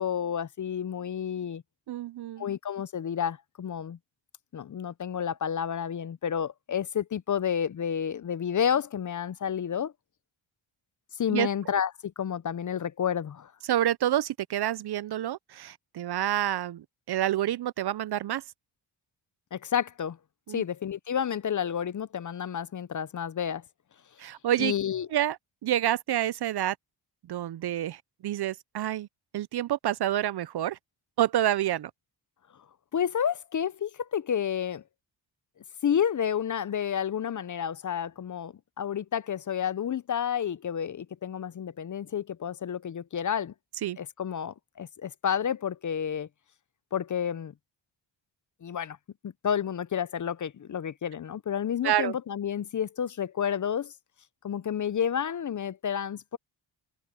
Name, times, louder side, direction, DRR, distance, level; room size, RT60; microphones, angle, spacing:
voice 1, 0.0-1.6 2.4-4.0 4.5-9.9 11.2-13.5 19.5-20.2 20.5-23.6 24.6-25.1 32.9-34.8 35.8-43.5 44.0-46.3 46.9-47.5 48.6-49.0 49.2-53.9 54.4-56.4, left 8 dB, 40° left, 0.5 m, -30 dB
voice 2, 1.9-2.5 11.3-11.5 13.7-18.4 20.5-20.6 24.2-24.7 25.1-26.8 27.3-29.1 29.3-30.8 31.2-31.9 43.8-44.0 51.8-52.2, right 12 dB, 55° right, 0.5 m, -28 dB
cardioid pair, 95°, 49 cm